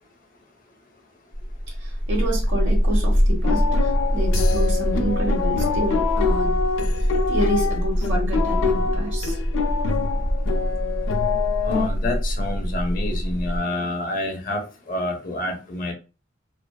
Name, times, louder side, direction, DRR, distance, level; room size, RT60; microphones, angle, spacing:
sound 1, 1.3-13.6, equal, 30° right, 1.0 m, -25 dB
voice 1, 1.8-6.6 7.3-9.4, equal, 85° right, 1.1 m, -28 dB
Purr, 2.8-10.9, equal, 50° right, 0.5 m, -26 dB
sound 2, 3.4-11.9, left 6 dB, 90° left, 0.3 m, -26 dB
voice 2, 11.6-15.9, left 1 dB, 45° left, 0.6 m, -28 dB
2.4 x 2.3 x 2.2 m
head